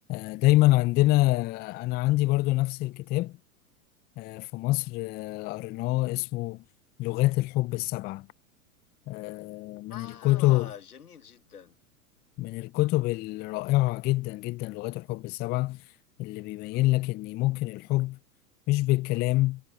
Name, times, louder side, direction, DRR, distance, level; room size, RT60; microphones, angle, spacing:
voice 1, 0.1-3.3 4.2-6.6 7.0-8.3 9.1-10.7 12.4-15.8 16.2-18.2 18.7-19.6, left 18 dB, 25° left, 0.4 m, -26 dB
voice 2, 9.9-11.8 16.7-17.0, left 8 dB, 85° left, 1.7 m, -45 dB
hypercardioid pair, 95°, 44 cm